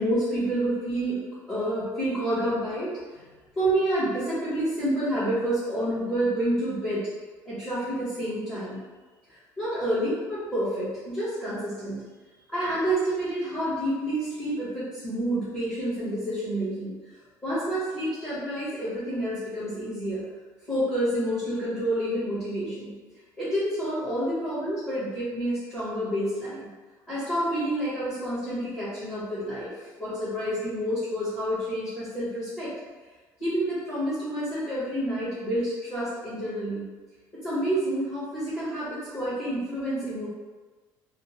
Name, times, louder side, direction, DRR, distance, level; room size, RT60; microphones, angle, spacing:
voice 1, 0.0-3.0 3.5-7.1 7.4-8.8 9.3-12.0 12.5-16.9 17.4-20.2 20.7-22.9 23.4-26.7 27.1-29.7 30.0-32.7 33.4-36.9 37.4-40.3, right 1 dB, 20° left, -14 dB, 1.2 m, -28 dB
3.5 x 2.1 x 3.0 m, 1.3 s
cardioid pair, 180°, 8 cm